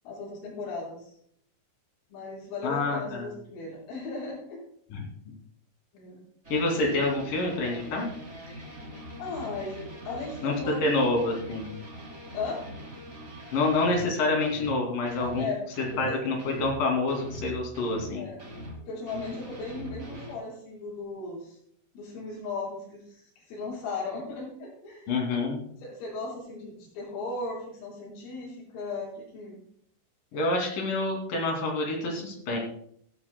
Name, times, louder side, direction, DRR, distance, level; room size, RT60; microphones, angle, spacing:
voice 1, 0.1-1.2 2.1-4.6 5.9-6.2 9.2-10.8 12.3-12.6 15.2-15.6 15.9-16.2 18.2-18.4 18.8-21.6 22.0-25.2 25.8-29.6, left 3 dB, 90° left, -7 dB, 7.2 m, -37 dB
voice 2, 2.6-3.3 4.9-5.1 6.5-8.1 10.4-10.5 10.8-11.7 13.5-15.5 16.0-18.3 25.1-25.7 30.3-32.6, left 2 dB, 50° left, 0 dB, 3.9 m, -27 dB
sound 1, 6.4-14.1 14.4-14.8 15.1-18.1 18.4-20.3, equal, 30° right, 1.2 m, -42 dB
17.5 x 12.5 x 2.3 m, 0.67 s
omnidirectional pair, 5.7 m